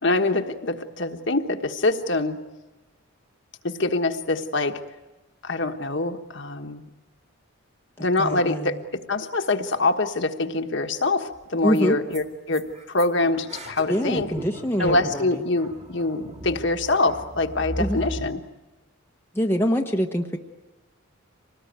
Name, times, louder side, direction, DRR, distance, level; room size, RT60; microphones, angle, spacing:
voice 1, 0.0-2.4 3.6-4.8 5.4-6.8 8.0-8.8 9.1-14.3 14.8-18.4, left 2 dB, 55° left, 5 dB, 1.4 m, -24 dB
voice 2, 8.2-8.8 11.6-12.0 13.9-15.4 17.8-18.0 19.3-20.4, equal, 10° left, 2 dB, 1.0 m, -25 dB
sound 1, 11.4-11.5 11.7-11.8 12.1-12.2 12.5-18.4, equal, 30° right, 2.2 m, -37 dB
26.0 x 19.0 x 9.3 m, 1.1 s
head